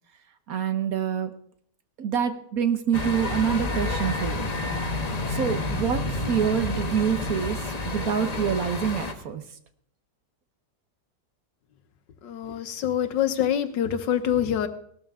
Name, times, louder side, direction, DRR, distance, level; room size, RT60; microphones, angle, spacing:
voice 1, 0.5-1.3 2.0-4.5 5.3-9.4, right 8 dB, 55° right, 9 dB, 1.4 m, -26 dB
sound 1, 2.9-9.1, left 2 dB, 25° left, 1.0 m, -29 dB
voice 2, 12.2-14.7, left 9 dB, 90° left, 10 dB, 1.7 m, -25 dB
17.5 x 13.0 x 3.6 m, 0.65 s
omnidirectional pair, 1.9 m